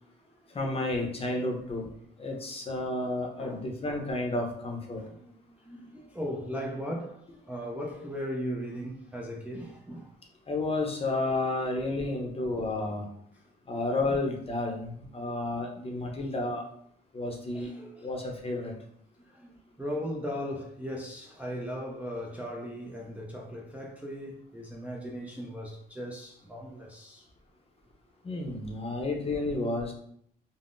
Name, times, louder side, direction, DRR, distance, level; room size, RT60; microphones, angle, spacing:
voice 1, 0.5-1.9 2.2-5.0 10.5-13.1 13.7-16.6 17.1-17.7 18.0-18.7 28.2-29.9, left 2 dB, 30° left, 0.7 m, -31 dB
voice 2, 4.9-5.3 5.6-10.1 13.3-13.4 14.2-14.3 15.4-15.5 17.5-18.1 19.2-27.3, equal, 5° right, 0.4 m, -38 dB
3.6 x 2.0 x 2.5 m
cardioid pair, 90°, 20 cm